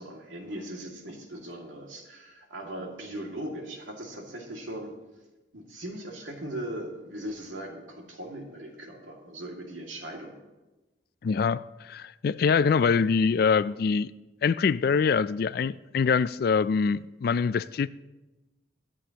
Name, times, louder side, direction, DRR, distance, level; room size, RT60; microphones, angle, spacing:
voice 1, 0.0-4.9 5.5-10.4, right 1 dB, 85° right, 2.2 m, -39 dB
voice 2, 11.2-14.1 14.4-17.9, left 5 dB, 50° left, 0.3 m, -24 dB
23.0 x 8.6 x 2.9 m
head